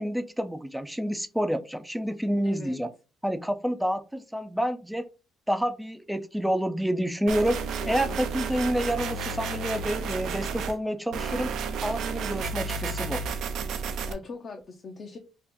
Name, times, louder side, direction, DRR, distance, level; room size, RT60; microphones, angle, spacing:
voice 1, 0.0-2.9 3.2-5.1 5.5-7.6 7.9-11.5 11.8-13.2, equal, 5° right, 9 dB, 0.3 m, -28 dB
voice 2, 2.4-2.8 7.8-8.2 8.5-8.7 14.1-15.2, left 4 dB, 45° left, 2 dB, 0.5 m, -41 dB
sound 1, 7.3-10.7 11.1-14.1, right 5 dB, 75° right, 0.4 m, -32 dB
2.9 x 2.4 x 3.5 m, 0.33 s
cardioid pair, 105°, 0 cm